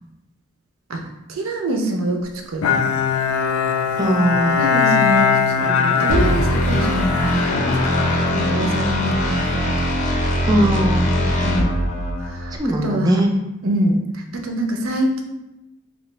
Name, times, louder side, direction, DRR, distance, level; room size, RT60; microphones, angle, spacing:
voice 1, 0.9-2.8 4.5-7.6 7.8-9.9 11.4-11.8 12.2-13.2 13.6-15.2, right 1 dB, 85° right, 4 dB, 0.5 m, -25 dB
Bowed string instrument, 2.6-9.3, left 6 dB, 90° left, 0.3 m, -21 dB
voice 2, 4.0-4.6 10.5-11.1 12.6-13.3, right 1 dB, 20° right, 2 dB, 0.3 m, -19 dB
sound 1, 6.1-12.6, equal, 35° left, 0.5 m, -21 dB
3.1 x 2.7 x 3.2 m, 0.96 s
head